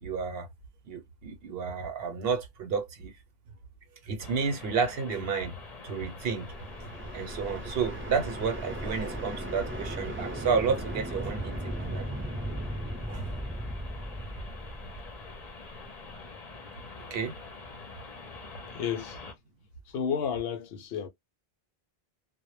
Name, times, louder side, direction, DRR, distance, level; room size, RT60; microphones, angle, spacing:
voice 1, 0.0-0.5 0.9-3.1 4.0-5.5 5.8-6.5 7.1-12.0 13.1-13.3 17.0-17.3, right 5 dB, 70° right, 0.9 m, -31 dB
sound 1, 4.2-19.3, left 3 dB, 45° left, 0.7 m, -46 dB
sound 2, 5.9-15.9, right 1 dB, 15° right, 0.6 m, -37 dB
voice 2, 18.7-19.2 19.9-21.1, left 7 dB, 75° left, 0.8 m, -31 dB
2.1 x 2.0 x 3.0 m
omnidirectional pair, 1.0 m